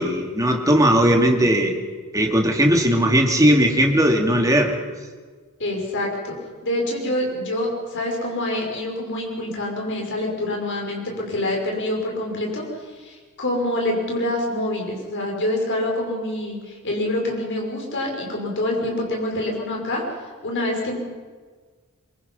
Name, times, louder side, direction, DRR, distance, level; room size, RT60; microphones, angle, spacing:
voice 1, 0.0-1.7 2.1-4.8, equal, 15° right, 2 dB, 2.3 m, -18 dB
voice 2, 5.6-6.3 6.6-12.6 13.0-20.0 20.4-21.0, left 1 dB, 55° left, 0 dB, 5.7 m, -26 dB
24.0 x 22.5 x 5.5 m, 1.5 s
head